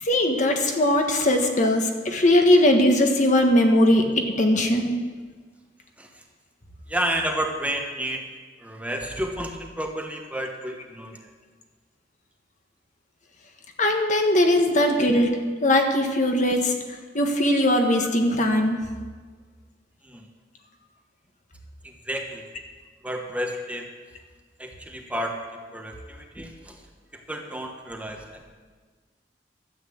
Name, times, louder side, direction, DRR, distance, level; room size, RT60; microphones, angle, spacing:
voice 1, 0.0-5.0 13.8-15.3 15.6-16.7 17.1-18.8, left 1 dB, 45° left, 3 dB, 1.4 m, -20 dB
voice 2, 6.9-8.2 8.6-11.3 18.0-18.1 20.0-20.2 21.8-22.5 23.0-23.9 24.6-25.4 25.7-26.8 27.1-28.4, right 1 dB, 10° right, 2 dB, 1.1 m, -31 dB
13.0 x 8.1 x 7.9 m, 1.5 s
head